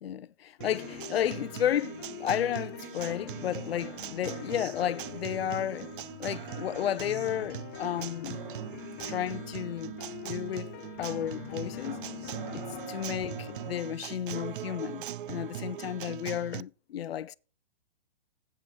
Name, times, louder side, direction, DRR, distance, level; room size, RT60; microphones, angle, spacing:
voice 1, 0.0-5.9 6.2-8.4 9.1-10.0 10.2-10.7 11.0-12.0 12.5-17.3, left 10 dB, 75° left, 0.7 m, -33 dB
sound 1, 0.6-13.8, left 11 dB, 20° left, 0.4 m, -44 dB
Acoustic guitar, 0.6-16.6, right 12 dB, 60° right, 0.5 m, -41 dB
8.8 x 7.8 x 6.7 m
hypercardioid pair, 160°, 30 cm